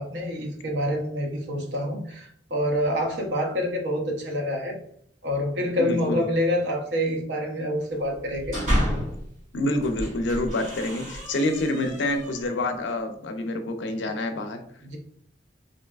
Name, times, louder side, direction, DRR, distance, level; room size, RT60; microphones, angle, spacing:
voice 1, 0.0-4.8 5.2-8.6 14.8-15.0, equal, 80° right, 1 dB, 0.7 m, -27 dB
voice 2, 5.8-6.2 9.5-14.6, left 1 dB, 85° left, 6 dB, 0.5 m, -27 dB
sound 1, 8.1-9.3 9.8-12.6, equal, 40° right, 1.1 m, -30 dB
3.2 x 2.7 x 2.3 m, 0.67 s
head